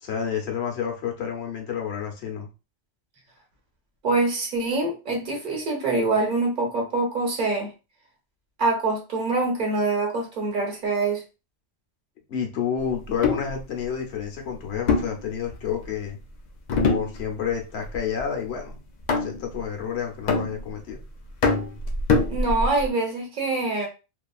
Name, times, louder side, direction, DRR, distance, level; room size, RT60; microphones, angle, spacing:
voice 1, 0.0-2.5 12.3-16.2 16.9-18.7 19.1-21.0, left 7 dB, 70° left, 1.0 m, -30 dB
voice 2, 4.0-7.7 8.6-11.2 22.3-23.9, right 3 dB, 50° right, 1.1 m, -25 dB
sound 1, 13.1-13.5 14.9-15.9 16.7-17.5 17.8-18.2 19.1-19.6 20.3-20.9 21.4-22.9, left 3 dB, 55° left, 0.5 m, -24 dB
2.8 x 2.3 x 2.3 m
omnidirectional pair, 1.1 m